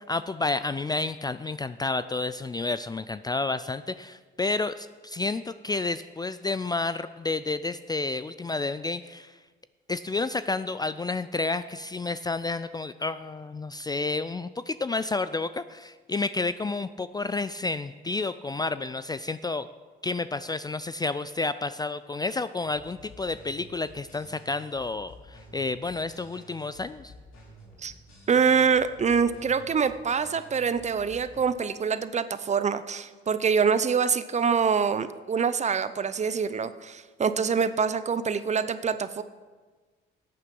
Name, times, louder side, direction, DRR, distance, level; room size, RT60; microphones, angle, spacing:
voice 1, 0.1-9.4 9.9-19.7 20.0-27.1, left 3 dB, 20° left, 13 dB, 0.3 m, -30 dB
sound 1, 22.6-31.4, equal, 90° left, 3.0 m, -51 dB
voice 2, 28.3-39.2, right 6 dB, 35° right, 13 dB, 0.6 m, -25 dB
14.5 x 8.5 x 5.4 m, 1.4 s
cardioid pair, 90°, 20 cm